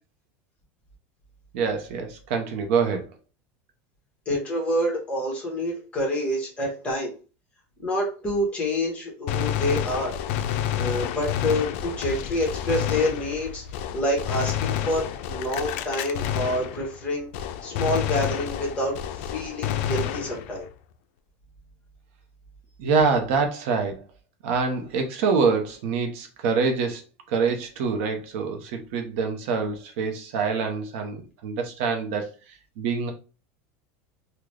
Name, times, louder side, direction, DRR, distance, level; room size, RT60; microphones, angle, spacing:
voice 1, 1.5-3.0 22.8-24.0 24.4-27.0 27.3-32.3 32.8-33.1, right 5 dB, 65° right, 0.7 m, -25 dB
voice 2, 4.2-7.1 7.8-10.2 10.8-13.6 13.9-17.3 17.6-20.7, left 1 dB, 15° left, 1.3 m, -27 dB
Gunshot gunfire, 9.3-17.1 17.3-20.7, left 10 dB, 65° left, 0.3 m, -29 dB
3.7 x 2.2 x 3.2 m
supercardioid pair, 155°, 7 cm